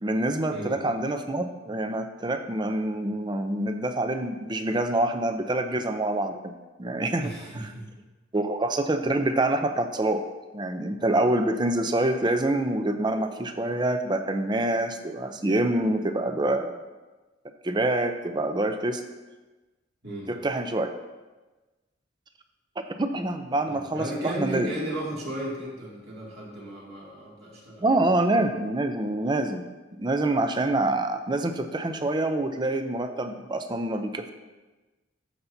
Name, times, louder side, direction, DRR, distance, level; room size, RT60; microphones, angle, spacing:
voice 1, 0.0-6.5 6.8-7.6 8.3-10.2 10.5-16.7 17.6-19.0 20.3-20.9 23.0-24.7 27.8-29.6 29.9-34.3, right 2 dB, 25° right, 7 dB, 0.5 m, -26 dB
voice 2, 7.2-7.9 20.0-20.3 23.6-28.0, right 1 dB, 55° right, -5 dB, 2.4 m, -35 dB
13.5 x 5.7 x 2.7 m, 1.2 s
head